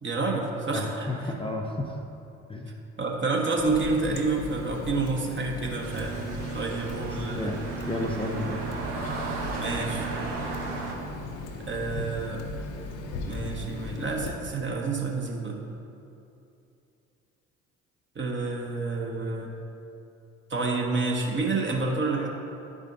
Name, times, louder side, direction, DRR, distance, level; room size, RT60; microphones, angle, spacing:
voice 1, 0.0-1.3 3.0-6.2 6.5-7.5 9.6-10.1 11.7-12.4 13.3-15.6 18.1-19.6 20.5-22.3, right 3 dB, 35° right, -1 dB, 1.2 m, -29 dB
voice 2, 0.7-2.0 2.5-2.7 6.9-8.7, left 1 dB, 15° left, 0 dB, 0.6 m, -32 dB
Water tap faucet, 3.6-14.3, left 3 dB, 60° left, 0.8 m, -37 dB
sound 1, 5.8-10.9, right 4 dB, 80° right, 0.9 m, -34 dB
10.5 x 5.0 x 2.7 m, 2.7 s
hypercardioid pair, 50°, 35 cm